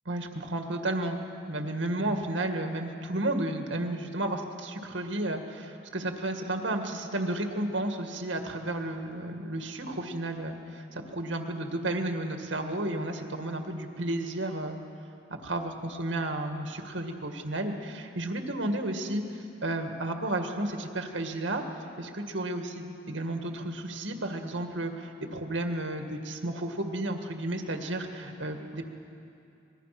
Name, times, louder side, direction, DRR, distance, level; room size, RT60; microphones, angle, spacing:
voice 1, 0.1-14.8 15.4-21.6 22.0-28.9, right 1 dB, 80° right, 4 dB, 2.0 m, -32 dB
25.5 x 21.0 x 6.0 m, 2.6 s
head